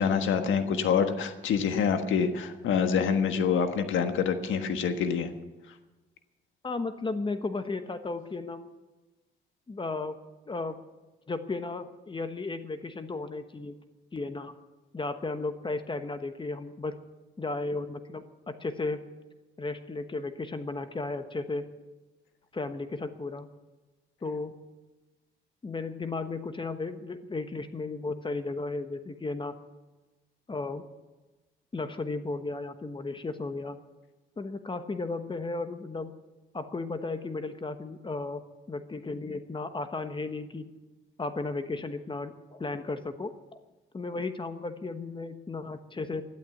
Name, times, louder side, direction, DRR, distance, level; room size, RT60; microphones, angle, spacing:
voice 1, 0.0-5.3, left 6 dB, 75° left, 7 dB, 1.5 m, -26 dB
voice 2, 6.6-8.7 9.7-10.2 10.5-10.8 11.3-13.8 14.1-14.5 14.9-16.9 17.4-19.0 19.6-21.6 22.5-23.5 24.2-24.5 25.6-29.5 30.5-30.8 31.7-33.8 34.4-36.1 36.5-38.4 38.7-40.7 41.2-43.3 43.9-46.2, left 3 dB, 25° left, 9 dB, 1.1 m, -34 dB
12.5 x 11.5 x 7.8 m, 1.2 s
cardioid pair, 90°, 20 cm